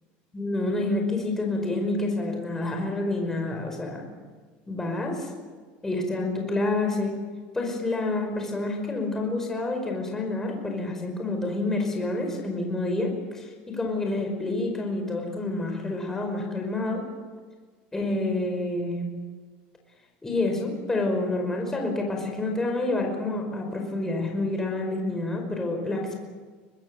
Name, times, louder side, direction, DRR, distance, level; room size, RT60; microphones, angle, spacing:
voice 1, 0.3-4.0 4.7-5.3 5.8-7.2 7.5-17.1 17.9-19.1 20.2-26.2, left 2 dB, 10° left, 2 dB, 5.2 m, -28 dB
24.5 x 20.5 x 7.9 m, 1.5 s
supercardioid pair, 140°, 5 cm